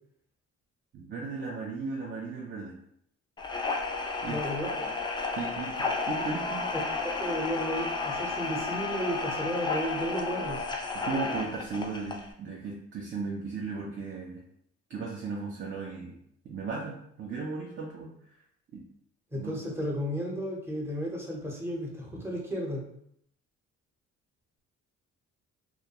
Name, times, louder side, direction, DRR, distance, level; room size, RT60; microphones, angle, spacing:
voice 1, 0.9-2.7 4.2-4.4 5.3-6.7 10.9-14.4 14.9-16.1 16.4-18.1 18.7-18.8 19.3-19.5, right 4 dB, 40° right, -3 dB, 0.5 m, -36 dB
sound 1, 3.4-12.3, left 3 dB, 15° left, 0.3 m, -32 dB
voice 2, 4.3-4.9 7.0-10.6 19.3-22.8, equal, 10° right, -3 dB, 0.7 m, -33 dB
2.3 x 2.1 x 2.8 m, 0.70 s
cardioid pair, 90°, 30 cm